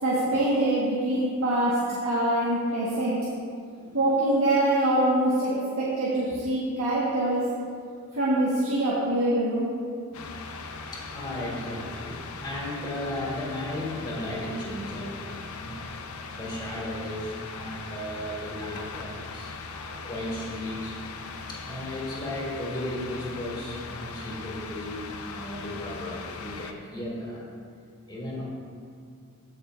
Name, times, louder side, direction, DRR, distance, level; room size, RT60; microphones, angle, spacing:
voice 1, 0.0-3.2 3.9-7.4 8.1-9.7, right 1 dB, 85° right, -8 dB, 1.6 m, -24 dB
sound 1, 10.1-26.7, left 4 dB, 80° left, 0.6 m, -39 dB
voice 2, 10.9-15.8 16.3-21.0 21.5-27.4 28.1-28.4, left 1 dB, 20° left, -5 dB, 2.4 m, -35 dB
16.0 x 6.5 x 2.7 m, 2.3 s
head